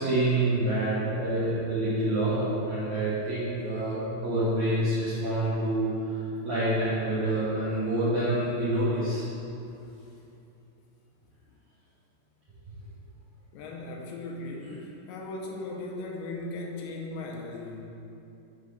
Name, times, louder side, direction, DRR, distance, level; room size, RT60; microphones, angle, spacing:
voice 1, 0.0-9.2 14.6-14.8, right 1 dB, 85° right, -11 dB, 1.5 m, -27 dB
voice 2, 13.5-14.8 15.1-17.8, left 2 dB, 80° left, 0 dB, 3.0 m, -37 dB
7.2 x 5.1 x 5.7 m, 2.8 s
omnidirectional pair, 5.5 m